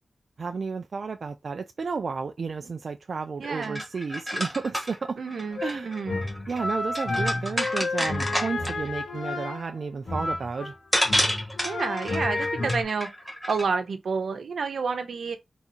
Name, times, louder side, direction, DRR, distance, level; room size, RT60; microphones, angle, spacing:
voice 1, 0.4-5.2 5.6-5.9 6.5-10.8, right 4 dB, 55° right, 0.3 m, -32 dB
sound 1, 3.4-8.9 10.4-10.5 10.9-13.6, equal, 5° left, 1.2 m, -30 dB
voice 2, 3.4-3.8 5.2-6.2 11.6-13.1 13.5-15.4, right 5 dB, 80° right, 0.9 m, -29 dB
sound 2, 5.5-10.7 11.0-12.8, left 2 dB, 55° left, 1.6 m, -31 dB
3.5 x 2.9 x 4.2 m
wide cardioid pair, 140°, 0 cm